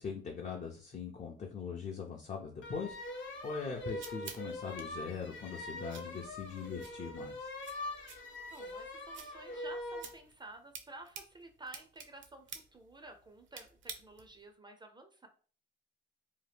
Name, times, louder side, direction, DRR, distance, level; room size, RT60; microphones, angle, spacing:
voice 1, 0.0-2.9 3.4-7.4, left 5 dB, 40° left, 0 dB, 0.5 m, -41 dB
sound 1, 2.6-10.1, left 1 dB, 70° left, 0.8 m, -43 dB
sound 2, 3.4-14.5, right 6 dB, 70° right, 0.6 m, -52 dB
voice 2, 8.5-15.3, right 2 dB, 20° right, 6 dB, 0.4 m, -52 dB
2.8 x 2.1 x 3.3 m, 0.42 s
cardioid pair, 90°, 20 cm